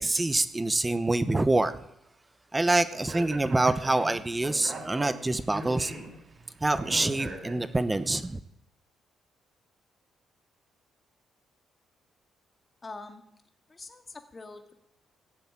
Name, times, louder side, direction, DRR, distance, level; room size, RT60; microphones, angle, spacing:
voice 1, 0.0-1.8 2.5-5.9 6.6-8.4, right 2 dB, 15° right, 13 dB, 0.9 m, -26 dB
Speech, 2.9-8.0, right 2 dB, 50° right, 4.2 m, -41 dB
voice 2, 12.8-13.2 13.7-14.7, left 3 dB, 25° left, 5 dB, 2.0 m, -44 dB
16.5 x 7.8 x 8.8 m, 0.79 s
cardioid pair, 90°, 0 cm